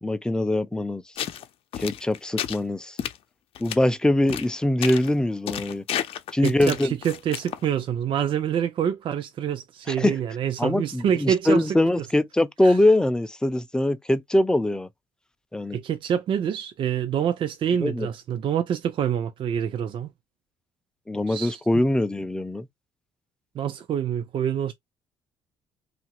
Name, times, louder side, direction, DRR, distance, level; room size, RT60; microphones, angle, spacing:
voice 1, 0.0-1.0 1.8-3.0 3.6-5.8 6.3-6.9 9.9-10.2 10.6-14.9 15.5-15.8 17.8-18.1 21.1-22.7, left 1 dB, 5° left, 0.5 m, -23 dB
sound 1, 1.2-1.4 1.7-2.6 3.0-3.2 3.6-3.8 4.3-4.5 4.8-5.1 5.5-7.7, left 10 dB, 65° left, 0.6 m, -31 dB
voice 2, 6.4-11.8 12.6-12.7 15.7-20.1 21.3-21.6 23.5-24.7, right 9 dB, 55° right, 0.5 m, -26 dB
2.8 x 2.5 x 2.9 m
supercardioid pair, 65°, 10 cm